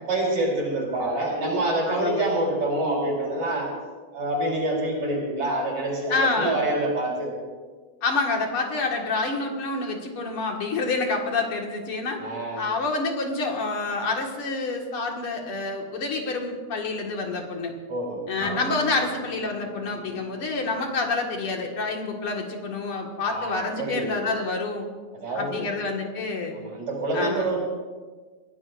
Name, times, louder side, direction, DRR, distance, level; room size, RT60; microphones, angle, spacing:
voice 1, 0.0-3.7 4.1-7.3 12.2-12.7 17.9-18.2 23.2-24.2 25.1-25.8 26.5-27.6, right 2 dB, 60° right, -2 dB, 5.3 m, -26 dB
voice 2, 1.9-2.3 6.1-6.6 8.0-12.2 12.6-17.7 18.3-24.9 25.3-26.6 27.1-27.5, left 3 dB, 50° left, 1 dB, 2.5 m, -28 dB
sound 1, 18.4-22.2, equal, 85° left, 6.4 m, -40 dB
24.0 x 16.5 x 2.6 m, 1.4 s
omnidirectional pair, 3.4 m